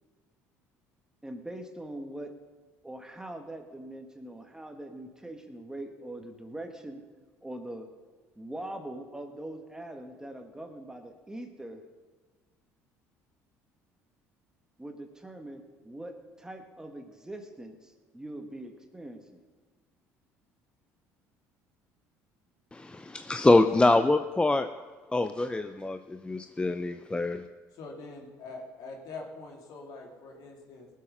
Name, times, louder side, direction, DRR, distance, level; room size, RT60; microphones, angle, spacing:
voice 1, 1.2-2.3 2.8-7.0 7.4-7.9 8.4-11.8 14.8-19.4, right 1 dB, 10° right, 5 dB, 1.6 m, -42 dB
voice 2, 22.7-24.7 25.1-27.4, left 2 dB, 15° left, 9 dB, 0.5 m, -25 dB
voice 3, 27.7-30.9, left 3 dB, 65° left, 1 dB, 2.9 m, -44 dB
18.5 x 7.4 x 5.5 m, 1.4 s
hypercardioid pair, 70°, 7 cm